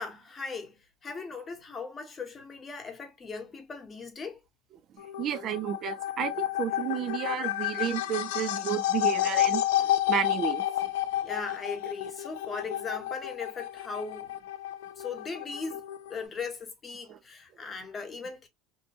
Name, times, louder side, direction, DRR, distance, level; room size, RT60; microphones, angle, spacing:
voice 1, 0.0-4.4 11.2-14.4 15.0-15.8 16.1-18.5, left 4 dB, 25° left, 1.0 m, -38 dB
sound 1, 5.0-16.3, left 13 dB, 85° left, 0.4 m, -30 dB
voice 2, 5.2-10.6 17.1-17.2, right 10 dB, 45° right, 0.4 m, -32 dB
2.7 x 2.2 x 2.7 m
supercardioid pair, 105°, 0 cm